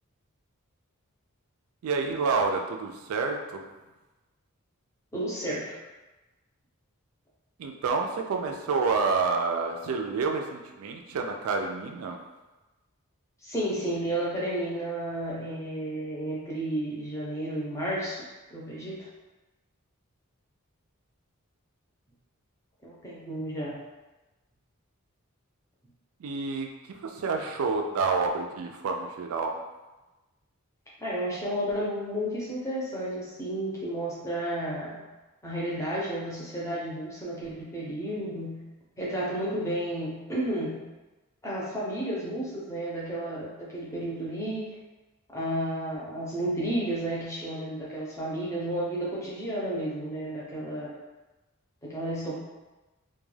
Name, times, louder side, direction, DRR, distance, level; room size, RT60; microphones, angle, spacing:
voice 1, 1.8-3.7 7.6-12.2 26.2-29.6, right 4 dB, 75° right, 3 dB, 0.3 m, -29 dB
voice 2, 5.1-5.8 13.4-18.2 18.5-19.1 22.8-23.8 31.0-35.0 35.4-38.6 39.0-40.8 41.4-44.8 45.3-50.9 51.8-52.3, right 1 dB, 15° left, -7 dB, 0.6 m, -32 dB
2.2 x 2.2 x 3.2 m, 1.1 s
head